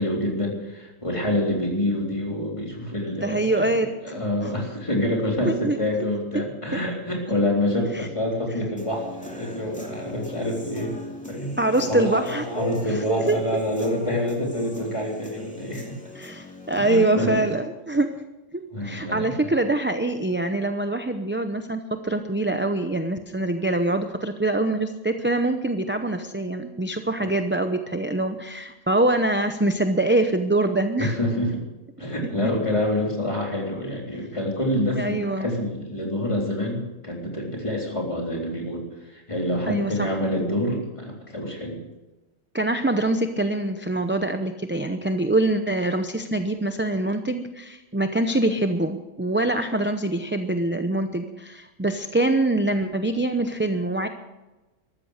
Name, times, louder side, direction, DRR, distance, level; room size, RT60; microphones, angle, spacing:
voice 1, 0.0-11.0 11.3-11.5 11.9-16.0 16.8-17.4 18.7-19.3 27.2-27.3 31.0-31.6 32.0-41.8, left 1 dB, 25° left, -1 dB, 3.8 m, -27 dB
voice 2, 3.2-4.2 5.4-5.8 7.9-8.1 11.6-13.6 16.1-18.1 18.5-31.1 32.4-32.5 35.0-35.5 39.7-40.1 42.5-54.1, right 2 dB, 10° right, 7 dB, 0.5 m, -24 dB
Human voice / Guitar, 8.8-16.8, left 1 dB, 5° left, 2.6 m, -40 dB
13.5 x 13.5 x 6.5 m, 1.1 s
omnidirectional pair, 1.4 m